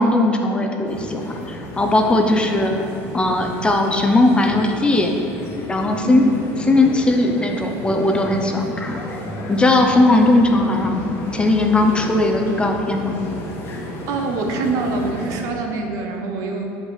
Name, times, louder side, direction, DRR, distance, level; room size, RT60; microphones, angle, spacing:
voice 1, 0.0-2.7 3.1-5.1 5.7-6.3 6.7-9.0 9.5-13.2, left 2 dB, 15° left, 3 dB, 0.5 m, -18 dB
sound 1, 0.9-15.5, left 1 dB, 45° left, 1.2 m, -32 dB
voice 2, 14.1-16.8, right 3 dB, 60° right, 3 dB, 0.8 m, -25 dB
7.1 x 5.3 x 3.2 m, 2.7 s
supercardioid pair, 110°, 6 cm